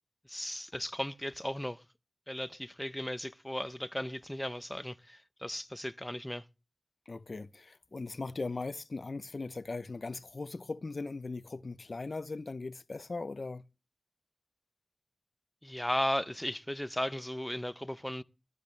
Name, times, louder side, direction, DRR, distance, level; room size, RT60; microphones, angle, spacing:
voice 1, 0.3-1.8 2.3-6.4 15.6-18.2, left 1 dB, 10° left, 0.6 m, -36 dB
voice 2, 7.1-13.6, left 3 dB, 75° left, 0.6 m, -39 dB
17.5 x 12.5 x 3.3 m
wide cardioid pair, 60°, 0 cm